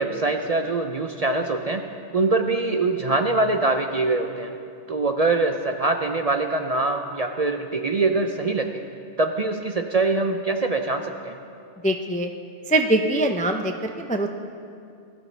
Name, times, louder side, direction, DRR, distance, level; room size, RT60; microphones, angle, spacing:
voice 1, 0.0-4.5 4.9-8.8 9.2-11.4, right 3 dB, 45° right, 4 dB, 0.6 m, -23 dB
voice 2, 11.8-12.3 12.7-14.3, right 1 dB, 10° left, 4 dB, 0.4 m, -23 dB
20.0 x 13.0 x 3.3 m, 2.4 s
omnidirectional pair, 1.2 m